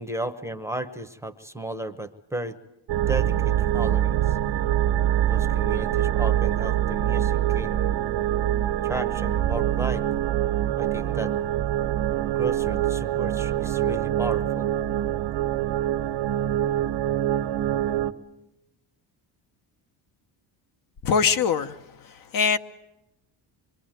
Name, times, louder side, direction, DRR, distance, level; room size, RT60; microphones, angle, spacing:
voice 1, 0.0-2.6 3.1-4.4 5.3-7.8 8.8-10.0 10.8-11.3 12.3-14.7, right 1 dB, 5° right, 1.0 m, -34 dB
sound 1, 2.9-18.1, right 12 dB, 80° right, 1.5 m, -24 dB
voice 2, 21.0-22.6, left 6 dB, 50° left, 1.1 m, -23 dB
26.0 x 23.5 x 9.1 m
cardioid pair, 170°, 43 cm